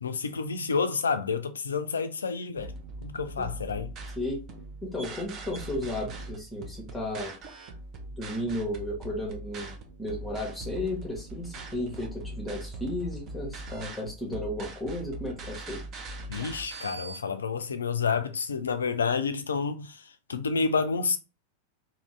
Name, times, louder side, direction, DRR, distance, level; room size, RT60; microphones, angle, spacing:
voice 1, 0.0-2.7 3.0-3.9 16.3-20.0 20.3-21.2, left 5 dB, 70° left, 0.4 m, -29 dB
sound 1, 2.6-17.2, right 2 dB, 35° right, 0.7 m, -41 dB
voice 2, 4.8-7.4 8.2-15.8, left 1 dB, 10° left, 1.0 m, -34 dB
2.7 x 2.7 x 3.1 m
figure-of-eight pair, 90°, 0 cm